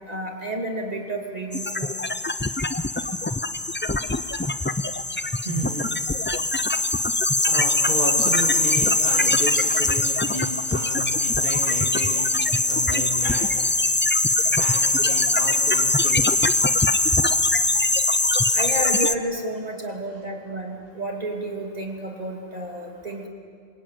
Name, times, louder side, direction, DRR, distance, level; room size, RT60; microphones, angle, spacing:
voice 1, 0.1-1.9 18.5-23.3, right 1 dB, 40° right, 1 dB, 2.7 m, -31 dB
sound 1, 1.5-19.1, left 2 dB, 15° left, 0.5 m, -22 dB
voice 2, 5.4-6.0 7.4-13.8 14.3-16.3, right 1 dB, 60° right, 0 dB, 2.4 m, -33 dB
27.0 x 24.0 x 9.1 m, 2.2 s
omnidirectional pair, 1.1 m